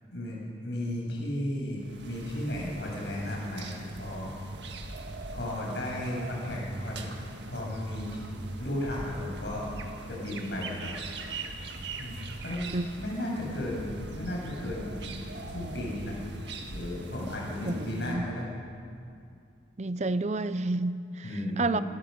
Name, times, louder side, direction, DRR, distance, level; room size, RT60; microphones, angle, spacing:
voice 1, 0.1-4.3 5.3-7.0 7.5-8.1 8.6-9.7 10.1-10.9 12.0-12.7 13.0-16.2 16.7-18.5 21.2-21.8, left 1 dB, 60° left, 7.3 m, -34 dB
sound 1, 1.8-18.1, right 2 dB, 60° right, 1.7 m, -41 dB
voice 2, 17.6-18.3 19.8-21.8, right 2 dB, 35° right, 0.5 m, -30 dB
26.0 x 15.0 x 6.7 m
head